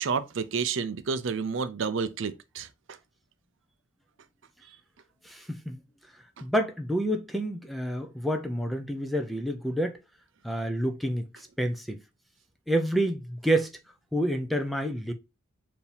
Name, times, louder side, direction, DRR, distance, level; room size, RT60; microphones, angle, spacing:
voice 1, 0.0-2.7, right 5 dB, 60° right, 0.5 m, -30 dB
voice 2, 5.2-5.8 6.4-10.0 10.4-11.2 11.6-12.0 12.7-13.7 14.1-15.1, right 1 dB, ahead, 0.5 m, -28 dB
4.6 x 2.8 x 3.3 m
head